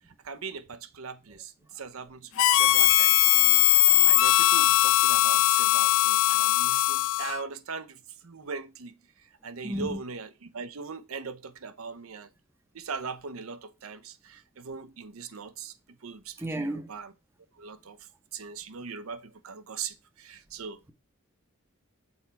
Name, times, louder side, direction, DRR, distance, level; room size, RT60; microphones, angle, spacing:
voice 1, 0.2-3.3 4.0-8.0 8.2-8.9 9.4-12.3 12.7-15.7 16.0-17.1 17.6-18.0 18.3-20.8, right 5 dB, 75° right, 0.7 m, -40 dB
Harmonica, 2.4-7.4, left 16 dB, 65° left, 0.3 m, -20 dB
voice 2, 9.6-10.0 16.4-16.9, right 1 dB, 10° right, 0.7 m, -32 dB
6.4 x 4.1 x 4.5 m
head